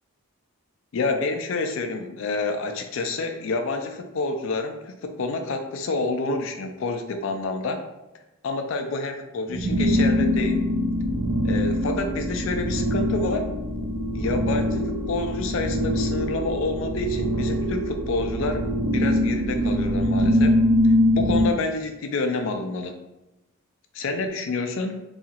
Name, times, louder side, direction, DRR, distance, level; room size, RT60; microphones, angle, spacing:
voice 1, 0.9-7.8 8.4-10.6 11.4-13.5 14.1-20.5 21.1-23.0 23.9-25.0, left 3 dB, 60° left, 5 dB, 0.3 m, -28 dB
sound 1, 9.5-21.5, equal, 65° right, 0.5 m, -23 dB
2.7 x 2.4 x 2.8 m, 0.97 s
head